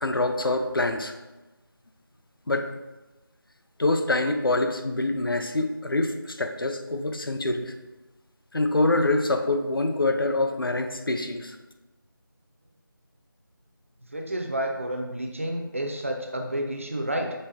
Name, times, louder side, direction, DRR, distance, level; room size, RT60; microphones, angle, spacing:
voice 1, 0.0-1.1 2.5-2.7 3.8-7.7 8.5-11.6, left 2 dB, 70° left, 6 dB, 0.5 m, -25 dB
voice 2, 14.1-17.3, right 1 dB, 35° right, 2 dB, 0.5 m, -30 dB
5.3 x 3.0 x 3.4 m, 1.1 s
figure-of-eight pair, 170°, 12 cm